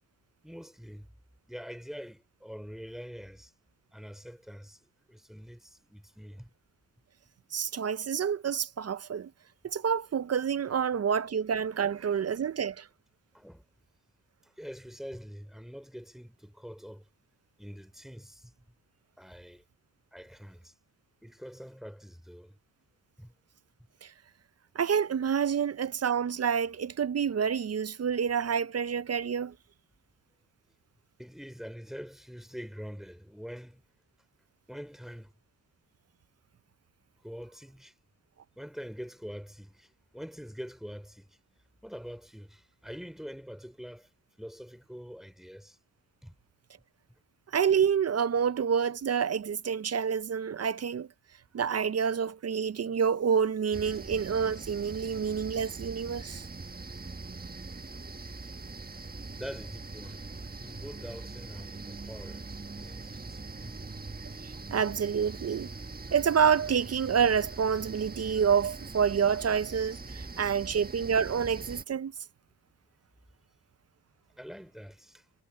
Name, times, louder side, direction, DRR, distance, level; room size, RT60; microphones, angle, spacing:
voice 1, 0.4-1.1 1.5-3.5 3.9-6.5 10.7-10.8 13.3-13.6 14.4-17.0 17.6-18.5 19.2-19.6 20.1-20.7 21.2-22.6 23.2-23.3 31.2-33.8 34.7-35.3 37.2-37.9 38.6-41.4 41.8-44.1 44.4-45.8 46.2-46.3 59.3-60.3 60.6-62.5 62.8-63.8 74.4-75.2, equal, ahead, 3.2 m, -45 dB
voice 2, 7.5-9.3 9.6-12.9 24.0-24.1 24.7-29.5 47.5-51.1 51.5-56.5 64.4-65.7 66.1-72.1, right 7 dB, 40° right, 0.6 m, -28 dB
sound 1, 53.7-71.8, right 3 dB, 25° right, 1.7 m, -42 dB
cardioid pair, 75°, 38 cm